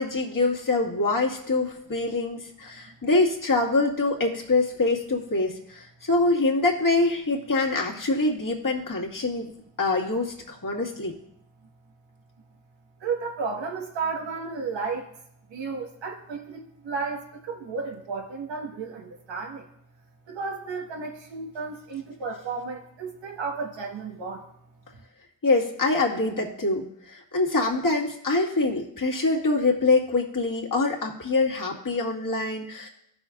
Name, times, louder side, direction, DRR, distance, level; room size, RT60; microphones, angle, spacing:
voice 1, 0.0-9.5 9.8-11.1 25.4-32.9, left 3 dB, 45° left, -1 dB, 2.2 m, -25 dB
voice 2, 13.0-15.1 15.5-19.7 20.3-24.5, right 4 dB, 85° right, 1 dB, 1.7 m, -33 dB
14.5 x 6.3 x 2.6 m, 0.74 s
cardioid pair, 55°, 43 cm